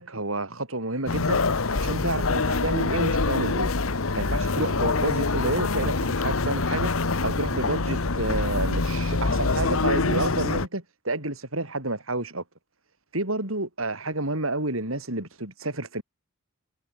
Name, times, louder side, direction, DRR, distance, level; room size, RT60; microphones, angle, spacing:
voice 1, 0.0-1.4 1.7-3.8 4.1-6.9 7.2-12.4 13.1-16.0, right 2 dB, 75° right, 7.4 m, -30 dB
sound 1, 1.1-10.7, left 3 dB, 80° left, 1.3 m, -25 dB
head